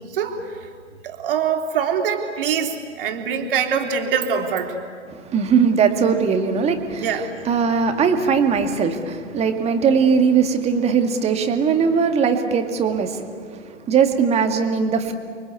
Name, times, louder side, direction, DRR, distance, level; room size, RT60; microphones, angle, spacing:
voice 1, 0.1-0.7 1.0-4.7 7.0-7.3, right 7 dB, 50° right, 3 dB, 3.4 m, -24 dB
voice 2, 5.1-15.1, right 6 dB, 15° right, 6 dB, 2.0 m, -20 dB
30.0 x 24.0 x 8.3 m, 2.1 s
figure-of-eight pair, 115°, 36 cm